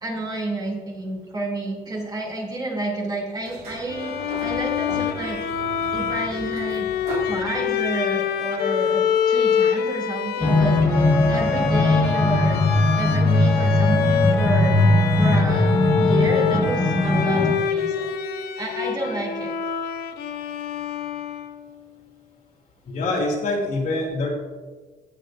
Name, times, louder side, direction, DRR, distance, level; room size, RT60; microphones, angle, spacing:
voice 1, 0.0-4.1 4.4-5.4 5.9-6.9 7.2-12.6 12.9-14.9 15.2-19.5, right 1 dB, 25° right, -3 dB, 2.5 m, -30 dB
Sliding door, 3.4-8.1, right 3 dB, 75° right, 2.8 m, -37 dB
Bowed string instrument, 3.9-21.7, left 8 dB, 80° left, 0.8 m, -26 dB
sound 1, 10.4-17.6, left 2 dB, 15° left, 1.2 m, -19 dB
voice 2, 22.9-24.3, left 2 dB, 60° left, -1 dB, 2.8 m, -25 dB
17.0 x 7.4 x 2.6 m, 1.4 s
cardioid pair, 140°, 16 cm